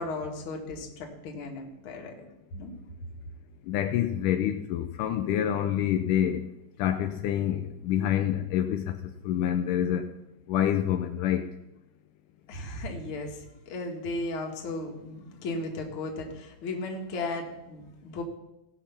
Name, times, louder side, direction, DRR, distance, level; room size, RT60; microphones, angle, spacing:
voice 1, 0.0-2.7 12.5-18.2, left 2 dB, 45° left, 1 dB, 2.1 m, -36 dB
voice 2, 3.7-6.5 6.8-9.0 9.2-10.1 10.5-11.5, left 10 dB, 80° left, 7 dB, 2.1 m, -27 dB
17.0 x 5.8 x 5.7 m, 0.92 s
omnidirectional pair, 3.8 m